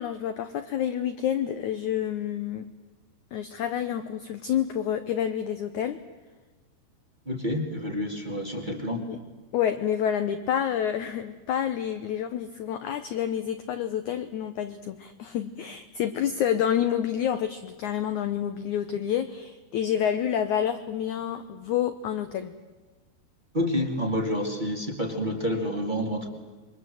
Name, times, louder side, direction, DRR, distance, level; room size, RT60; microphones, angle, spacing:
voice 1, 0.0-2.6 3.3-6.0 8.9-9.2 9.5-22.5, left 9 dB, 85° left, 9 dB, 1.7 m, -28 dB
voice 2, 7.3-9.0 23.5-26.3, equal, 15° right, 2 dB, 1.7 m, -28 dB
27.0 x 23.5 x 7.8 m, 1.3 s
omnidirectional pair, 4.7 m